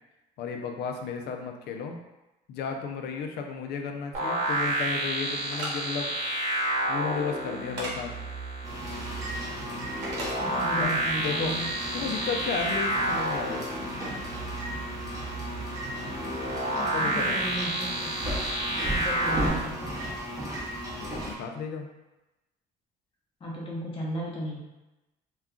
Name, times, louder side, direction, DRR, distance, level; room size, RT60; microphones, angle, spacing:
voice 1, 0.4-2.0 2.5-6.1 6.9-8.1 10.7-11.6 11.8-13.7 16.9-17.4 20.9-21.9, left 5 dB, 70° left, 4 dB, 0.4 m, -33 dB
sound 1, 4.1-19.5, right 2 dB, 50° right, 1.0 m, -30 dB
sound 2, 5.5-5.7 7.8-7.9 10.0-10.3, right 1 dB, 85° right, 0.8 m, -34 dB
sound 3, 8.6-21.3, equal, 20° right, 0.8 m, -36 dB
voice 2, 10.4-11.7 12.0-12.2 16.8-18.1 18.7-20.1 23.4-24.6, right 1 dB, 35° left, -4 dB, 0.8 m, -35 dB
2.3 x 2.3 x 3.6 m, 1.0 s
cardioid pair, 110°, 17 cm